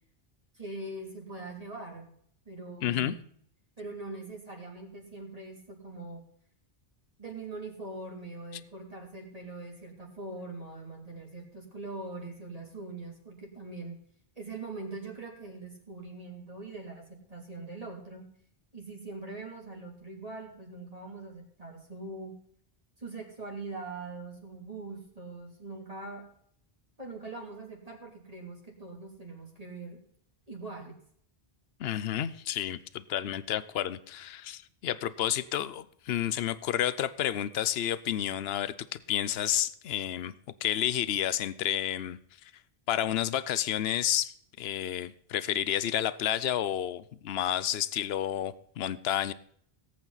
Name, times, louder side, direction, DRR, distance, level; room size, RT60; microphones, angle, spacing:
voice 1, 0.5-2.1 2.4-3.2 3.8-6.2 7.2-14.0 14.4-18.3 18.7-22.4 23.0-26.3 27.0-30.0 30.5-30.9, right 3 dB, 35° right, -1 dB, 3.1 m, -42 dB
voice 2, 2.8-3.2 31.8-40.3 40.6-42.2 42.9-49.3, left 11 dB, 80° left, 16 dB, 0.9 m, -30 dB
18.0 x 8.6 x 4.0 m, 0.63 s
omnidirectional pair, 1.0 m